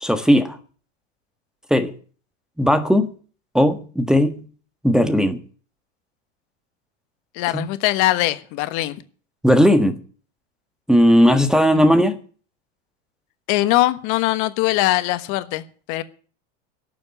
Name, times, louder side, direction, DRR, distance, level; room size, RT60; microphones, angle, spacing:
voice 1, 0.0-0.6 1.7-1.9 2.6-3.1 3.5-4.4 4.8-5.4 7.5-7.7 9.4-10.0 10.9-12.2, equal, ahead, 1.4 m, -16 dB
voice 2, 7.3-9.0 11.7-11.9 13.5-16.0, left 17 dB, 55° left, 1.3 m, -21 dB
12.0 x 7.3 x 9.2 m
hypercardioid pair, 110°, 36 cm